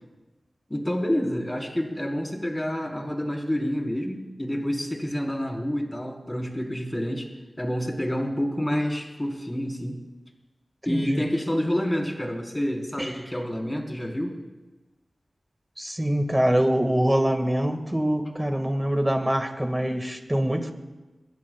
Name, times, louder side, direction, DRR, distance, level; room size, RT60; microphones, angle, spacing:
voice 1, 0.7-7.3 7.6-10.0 10.8-14.4, equal, 20° left, 0 dB, 4.4 m, -28 dB
voice 2, 10.9-11.3 13.0-13.1 15.8-20.7, right 1 dB, 15° right, 6 dB, 2.0 m, -24 dB
26.0 x 21.5 x 2.4 m, 1.2 s
cardioid pair, 45°, 0 cm